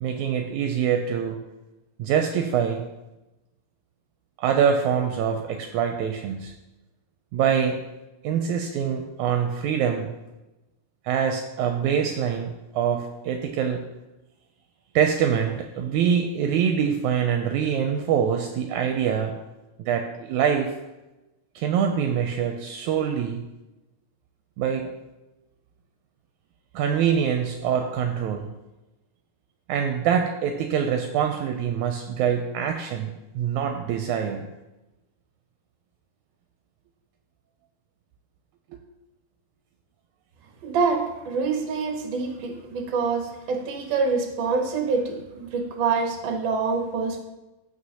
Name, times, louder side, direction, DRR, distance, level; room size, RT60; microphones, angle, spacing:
voice 1, 0.0-1.4 2.0-2.8 4.4-6.5 7.3-7.8 8.2-10.1 11.1-13.8 15.0-19.3 19.8-20.7 21.6-23.4 24.6-24.9 26.7-28.5 29.7-34.5 38.7-38.8, right 8 dB, 80° right, 4 dB, 1.9 m, -24 dB
voice 2, 40.6-47.2, right 4 dB, 55° right, 2 dB, 1.3 m, -26 dB
14.5 x 5.0 x 2.8 m, 1.0 s
omnidirectional pair, 3.6 m